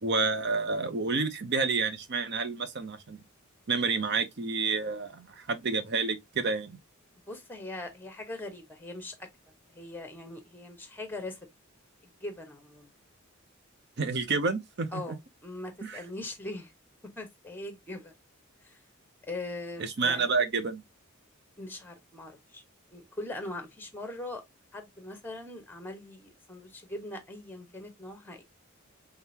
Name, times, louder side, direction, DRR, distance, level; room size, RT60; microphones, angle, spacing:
voice 1, 0.0-3.2 3.7-6.8 14.0-15.2 15.8-16.0 19.8-20.8, right 4 dB, 55° right, 0.7 m, -29 dB
voice 2, 7.3-9.3 9.7-11.4 12.2-12.9 14.9-16.7 17.2-18.1 18.6-18.8 19.2-20.3 21.6-22.6 22.9-24.4 24.7-28.4, left 2 dB, 10° left, 1.1 m, -41 dB
3.8 x 3.5 x 2.8 m
head